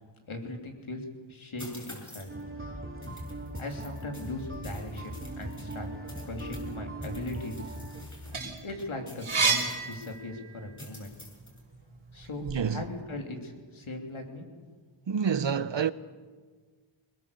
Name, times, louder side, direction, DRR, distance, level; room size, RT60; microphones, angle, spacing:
voice 1, 0.3-2.3 3.6-5.9 6.2-7.8 8.6-11.1 12.1-14.5, left 2 dB, 75° left, 3.3 m, -39 dB
sound 1, 1.6-2.4 3.0-6.7 7.0-10.2 10.8-11.6, left 1 dB, 35° left, 6.4 m, -48 dB
sound 2, 2.3-8.0, right 1 dB, 25° right, 2.8 m, -40 dB
sound 3, 8.1-10.7 11.2-12.6, right 4 dB, 80° right, 4.3 m, -30 dB
voice 2, 12.4-12.8 15.1-15.9, right 7 dB, 65° right, 0.9 m, -28 dB
23.0 x 21.0 x 6.8 m
wide cardioid pair, 60°, 48 cm